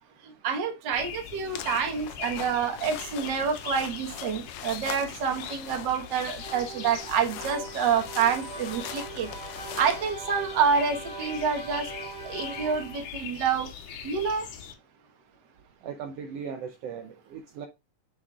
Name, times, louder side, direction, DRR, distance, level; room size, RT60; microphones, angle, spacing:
voice 1, 0.4-9.3 9.8-11.9 12.2-13.7 14.0-14.5, right 6 dB, 55° right, 1.3 m, -27 dB
sound 1, 0.9-14.7, left 8 dB, 75° left, 2.5 m, -42 dB
sound 2, 1.5-10.1, left 10 dB, 90° left, 2.3 m, -42 dB
sound 3, 6.4-13.2, right 4 dB, 25° right, 1.5 m, -41 dB
voice 2, 15.8-17.7, right 6 dB, 80° right, 1.4 m, -38 dB
7.8 x 6.1 x 2.4 m
omnidirectional pair, 3.7 m